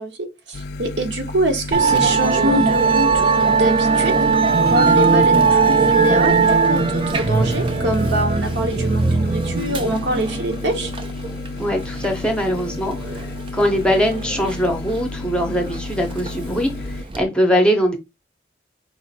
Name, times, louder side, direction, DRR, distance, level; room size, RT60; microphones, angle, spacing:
voice 1, 0.0-4.3 4.6-10.9, right 1 dB, 75° right, 0.9 m, -24 dB
sound 1, 0.5-17.0, left 3 dB, 55° left, 0.3 m, -32 dB
Musical instrument, 1.7-17.2, right 4 dB, 30° right, 0.4 m, -20 dB
voice 2, 11.6-18.0, equal, 5° left, 0.7 m, -21 dB
4.7 x 2.5 x 4.1 m
head